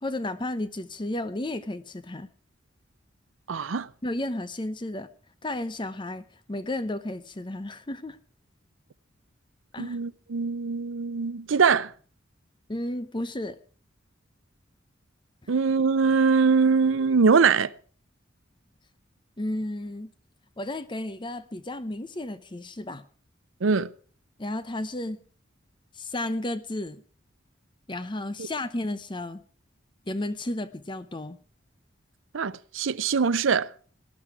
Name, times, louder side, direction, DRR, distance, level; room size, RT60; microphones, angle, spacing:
voice 1, 0.0-2.3 4.0-5.1 5.4-8.2 9.7-10.0 12.7-13.6 19.4-20.1 20.6-23.1 24.4-25.2 25.9-27.0 27.9-29.4 30.1-31.4, left 1 dB, 25° left, 0.7 m, -33 dB
voice 2, 3.5-3.9 9.8-11.9 15.5-17.7 23.6-23.9 28.4-28.5 32.3-33.7, right 5 dB, 85° right, 0.6 m, -22 dB
18.5 x 11.5 x 4.8 m
head